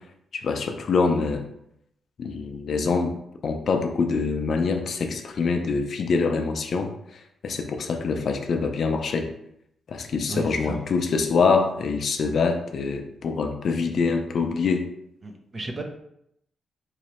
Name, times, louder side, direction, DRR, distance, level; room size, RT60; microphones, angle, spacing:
voice 1, 0.3-1.4 2.2-3.1 3.4-9.3 9.9-14.9, left 4 dB, 60° left, 5 dB, 0.5 m, -25 dB
voice 2, 10.3-10.8 15.2-15.8, right 2 dB, 30° right, 3 dB, 0.6 m, -33 dB
3.8 x 3.1 x 2.9 m, 0.76 s
cardioid pair, 95°, 0 cm